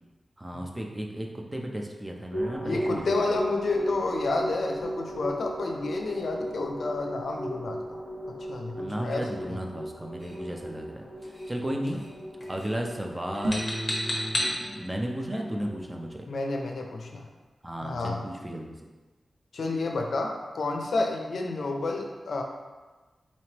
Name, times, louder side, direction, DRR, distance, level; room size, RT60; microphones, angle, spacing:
voice 1, 0.4-3.4 8.7-12.0 12.5-16.2 17.6-18.8, right 1 dB, 15° right, 1 dB, 0.4 m, -34 dB
sound 1, 2.3-16.1, equal, 50° right, 1.1 m, -37 dB
voice 2, 2.6-8.0 8.5-9.6 16.3-17.3 17.8-18.2 19.5-22.4, left 3 dB, 75° left, 2 dB, 0.5 m, -30 dB
sound 2, 10.2-10.4 11.2-11.6 11.9-12.2 12.4-12.8 13.3-14.6, equal, 15° left, 0.9 m, -32 dB
sound 3, 13.3-13.8, right 1 dB, 70° right, 0.7 m, -31 dB
4.2 x 3.1 x 2.9 m, 1.3 s
wide cardioid pair, 140°, 0 cm